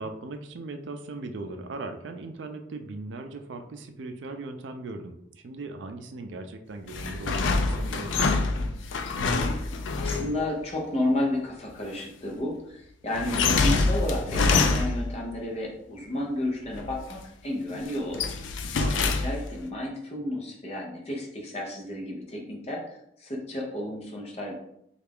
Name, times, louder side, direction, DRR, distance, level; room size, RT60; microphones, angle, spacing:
voice 1, 0.0-8.4 18.8-19.3, right 3 dB, 75° right, 6 dB, 0.4 m, -38 dB
sound 1, 6.9-10.4 13.1-15.2 16.7-17.2 17.7-19.6, left 3 dB, 80° left, 0.4 m, -26 dB
voice 2, 9.5-24.5, left 1 dB, 35° left, -1 dB, 0.7 m, -32 dB
3.3 x 2.4 x 3.5 m, 0.75 s
head